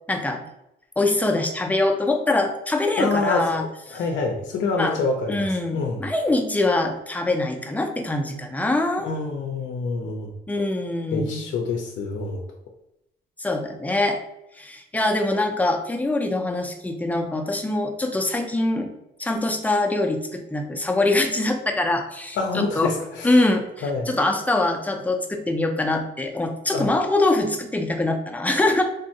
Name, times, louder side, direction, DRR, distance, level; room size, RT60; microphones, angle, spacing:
voice 1, 0.1-0.4 1.0-3.6 3.9-4.0 4.8-5.0 5.3-9.1 10.5-11.4 13.4-14.2 14.6-18.9 19.2-22.9 23.2-28.8, left 2 dB, 10° left, 3 dB, 0.5 m, -23 dB
voice 2, 3.0-6.1 9.0-10.3 11.1-12.4 22.4-23.3 23.8-24.2 26.7-26.9, left 3 dB, 65° left, 1 dB, 0.5 m, -27 dB
3.5 x 2.1 x 2.7 m, 0.85 s
cardioid pair, 90°, 20 cm